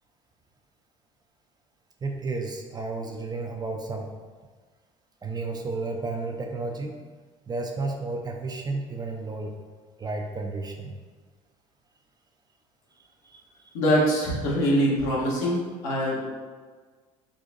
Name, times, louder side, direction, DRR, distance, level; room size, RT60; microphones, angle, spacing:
voice 1, 2.0-4.1 5.2-7.0 7.5-9.6 10.0-10.9 13.2-13.7, right 3 dB, 20° right, 2 dB, 0.4 m, -32 dB
voice 2, 13.7-16.3, equal, 70° left, -4 dB, 1.0 m, -24 dB
3.9 x 2.4 x 2.5 m, 1.5 s
hypercardioid pair, 65°, 18 cm